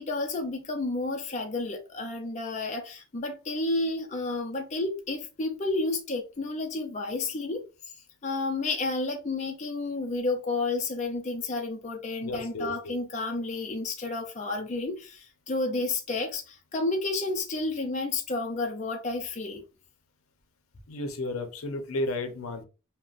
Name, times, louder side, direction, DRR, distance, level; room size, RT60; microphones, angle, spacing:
voice 1, 0.0-7.6 8.2-19.6, left 2 dB, 35° left, 0.4 m, -31 dB
voice 2, 12.2-13.0 20.9-22.6, left 2 dB, 80° left, 0.6 m, -33 dB
3.8 x 2.1 x 2.4 m
head